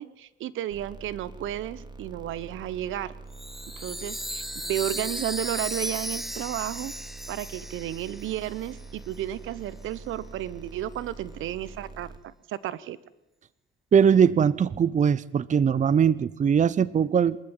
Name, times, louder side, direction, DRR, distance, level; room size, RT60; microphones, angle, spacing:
voice 1, 0.0-3.1 3.8-6.9 7.3-13.0, right 12 dB, 80° right, 18 dB, 1.0 m, -33 dB
sound 1, 0.7-12.2, right 3 dB, 20° right, 2.7 m, -45 dB
Chime, 3.3-8.9, equal, ahead, 1.0 m, -36 dB
voice 2, 13.9-17.4, right 7 dB, 40° right, 20 dB, 0.7 m, -21 dB
23.5 x 14.0 x 9.1 m, 0.95 s
cardioid pair, 90°, 20 cm